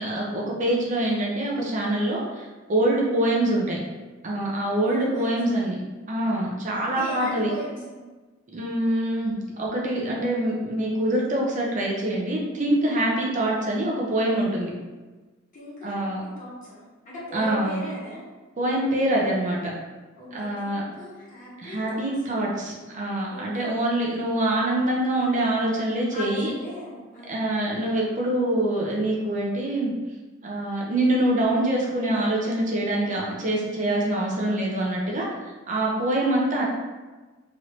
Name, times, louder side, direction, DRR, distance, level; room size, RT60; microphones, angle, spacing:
voice 1, 0.0-3.8 4.2-5.8 6.1-7.5 8.5-14.7 15.8-16.2 17.3-17.8 18.6-19.6 20.3-20.8 21.6-26.5 27.3-29.9 30.4-36.6, right 1 dB, 40° right, -3 dB, 0.5 m, -25 dB
voice 2, 4.8-5.6 6.9-8.0 15.5-16.1 16.4-18.2 20.2-22.1 23.3-23.8 26.1-27.4 36.0-36.2, equal, 40° left, -7 dB, 1.1 m, -38 dB
3.0 x 2.6 x 3.1 m, 1.3 s
head